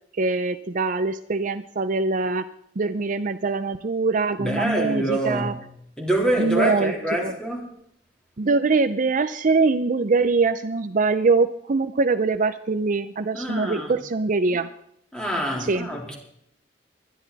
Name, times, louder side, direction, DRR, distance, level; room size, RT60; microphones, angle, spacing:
voice 1, 0.1-2.5 2.8-5.5 6.4-6.9 7.2-7.3 8.4-14.7 15.6-15.9, right 4 dB, 45° right, 0.6 m, -23 dB
voice 2, 4.4-5.7 6.0-7.6 13.3-13.9 15.1-16.2, right 1 dB, 5° left, 3.7 m, -26 dB
21.0 x 12.0 x 4.0 m
head